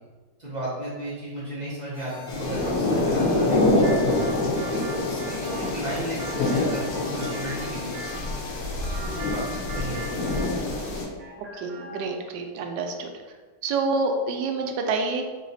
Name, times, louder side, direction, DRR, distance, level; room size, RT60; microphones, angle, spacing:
voice 1, 0.4-4.0 4.7-4.8 5.1-8.2 9.0-10.2, right 1 dB, 35° right, -9 dB, 0.8 m, -34 dB
sound 1, 1.9-9.1, left 4 dB, 90° left, 0.4 m, -44 dB
sound 2, 2.3-11.1, left 2 dB, 70° left, 1.2 m, -26 dB
sound 3, 3.8-8.3 8.8-10.9 11.2-12.2, right 2 dB, 65° right, 1.0 m, -40 dB
voice 2, 11.4-13.1 13.6-15.3, right 3 dB, 85° right, 3 dB, 1.2 m, -27 dB
3.3 x 2.8 x 3.9 m, 1.4 s
omnidirectional pair, 1.9 m